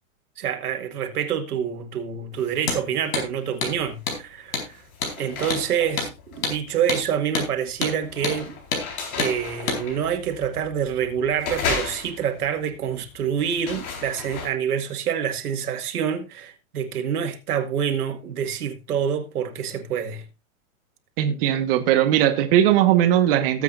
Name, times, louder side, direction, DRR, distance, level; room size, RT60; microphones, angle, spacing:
voice 1, 0.4-4.8 5.2-8.6 9.2-20.2, right 8 dB, 85° right, 2.0 m, -27 dB
Hammer, 2.6-2.8 3.1-3.3 3.6-3.8 4.1-4.2 4.5-4.7 5.0-5.2 5.5-5.7 6.0-6.1 6.4-6.6 6.9-7.0 7.3-7.5 7.8-8.0 8.2-8.4 8.7-8.9 9.2-9.3 9.7-9.8, left 4 dB, 60° left, 4.5 m, -27 dB
sound 1, 3.7-4.2 4.5-14.5, left 5 dB, 80° left, 4.5 m, -35 dB
voice 2, 21.2-23.6, right 11 dB, 40° right, 1.4 m, -19 dB
18.0 x 8.1 x 2.6 m
supercardioid pair, 165°, 44 cm